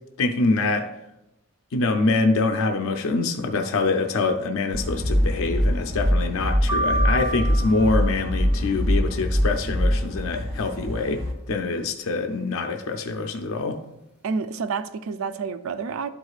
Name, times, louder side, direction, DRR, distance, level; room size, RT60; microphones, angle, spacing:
voice 1, 0.2-0.9 1.7-13.8, left 3 dB, 70° left, 4 dB, 0.5 m, -25 dB
sound 1, 4.7-11.3, equal, 55° right, 1.0 m, -23 dB
sound 2, 6.7-8.8, right 2 dB, 5° right, 0.5 m, -29 dB
voice 2, 14.2-16.1, right 5 dB, 70° right, 12 dB, 0.4 m, -29 dB
12.0 x 4.8 x 2.4 m, 0.92 s
head